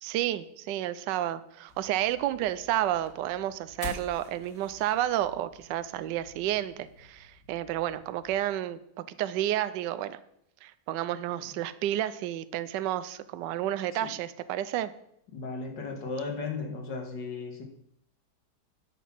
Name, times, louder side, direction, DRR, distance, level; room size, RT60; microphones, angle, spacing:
voice 1, 0.0-8.8 9.1-10.2 10.6-14.9, right 12 dB, 80° right, 13 dB, 1.2 m, -31 dB
sound 1, 1.7-8.4, left 3 dB, 50° left, 2.7 m, -48 dB
voice 2, 15.3-17.6, left 4 dB, 80° left, 2 dB, 2.4 m, -35 dB
9.0 x 6.1 x 7.2 m, 0.75 s
omnidirectional pair, 1.9 m